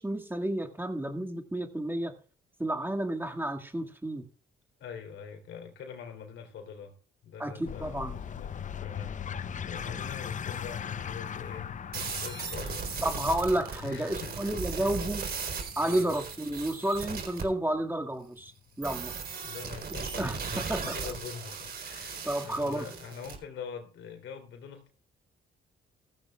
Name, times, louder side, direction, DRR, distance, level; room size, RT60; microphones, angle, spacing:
voice 1, 0.0-2.1 2.6-4.2 7.4-8.2 13.0-15.2 15.8-18.5 18.8-19.2 20.2-21.0 22.2-22.9, right 1 dB, 10° right, 5 dB, 1.9 m, -31 dB
voice 2, 4.8-7.0 7.2-8.5 8.8-13.0 13.8-15.2 15.8-16.1 19.4-24.9, left 6 dB, 75° left, 6 dB, 3.4 m, -44 dB
sound 1, 7.7-18.8, left 8 dB, 40° left, 0.6 m, -40 dB
sound 2, 11.9-17.4 18.8-23.4, right 5 dB, 50° right, 4.1 m, -37 dB
16.0 x 15.0 x 2.4 m, 0.39 s
cardioid pair, 90°, 20 cm